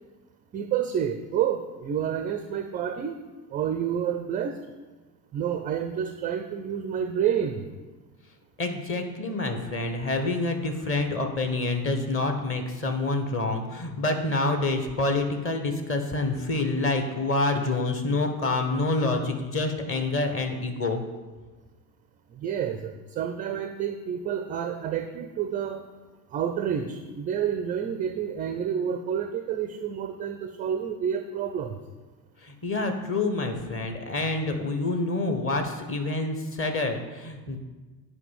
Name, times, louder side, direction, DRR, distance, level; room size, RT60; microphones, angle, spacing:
voice 1, 0.5-3.2 3.5-4.6 5.3-7.6 22.4-25.8 26.3-31.8, right 8 dB, 20° right, 7 dB, 0.4 m, -29 dB
voice 2, 8.6-21.0 32.4-37.6, left 2 dB, 25° left, 5 dB, 1.3 m, -27 dB
8.3 x 5.4 x 7.1 m, 1.3 s
figure-of-eight pair, 75°, 50 cm